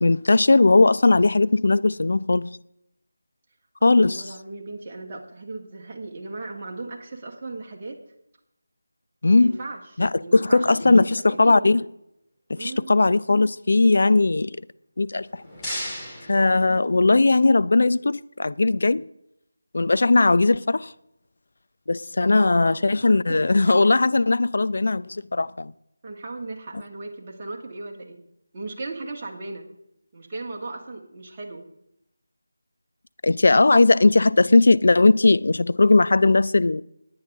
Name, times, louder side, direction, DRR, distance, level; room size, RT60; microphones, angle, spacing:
voice 1, 0.0-2.5 3.8-4.2 9.2-9.6 10.0-11.8 12.5-14.6 15.0-15.4 16.3-19.0 19.7-20.9 21.9-25.7 33.2-36.8, left 3 dB, 55° left, 0.4 m, -18 dB
voice 2, 3.8-8.0 9.3-11.8 12.5-13.0 22.3-23.4 26.0-28.2 28.5-29.7 30.1-31.7, right 3 dB, 25° right, 2.0 m, -37 dB
sound 1, 15.1-17.3, left 1 dB, 10° left, 2.9 m, -36 dB
19.0 x 9.6 x 3.6 m
figure-of-eight pair, 165°, 0 cm